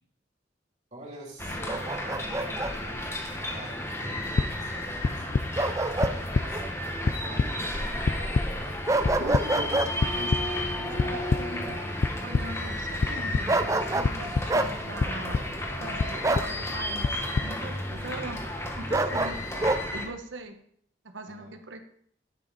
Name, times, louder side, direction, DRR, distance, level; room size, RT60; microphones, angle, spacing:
voice 1, 0.9-6.6 7.0-8.5 21.3-21.5, right 1 dB, 40° right, -4 dB, 3.4 m, -45 dB
sound 1, 1.4-20.1, left 1 dB, 15° left, 1.3 m, -33 dB
Bark, 1.7-2.7 5.6-6.2 6.5-6.7 8.9-9.9 13.5-14.1 14.5-14.7 16.2-16.5 18.9-19.8, right 2 dB, 15° right, 0.5 m, -26 dB
sound 2, 4.4-4.5 5.0-5.4 6.0-6.4 6.8-7.5 8.1-8.4 9.0-9.4 10.0-10.4 11.0-11.4 12.0-12.4 13.0-13.4 14.0-14.5 15.0-15.4 16.0-16.4 17.0-17.5, left 4 dB, 45° left, 0.4 m, -25 dB
voice 2, 9.2-11.7 12.2-15.4 15.8-18.4 18.8-19.4 19.9-20.6 21.0-21.8, right 2 dB, 90° right, 6 dB, 1.3 m, -41 dB
12.0 x 6.2 x 4.1 m, 0.62 s
head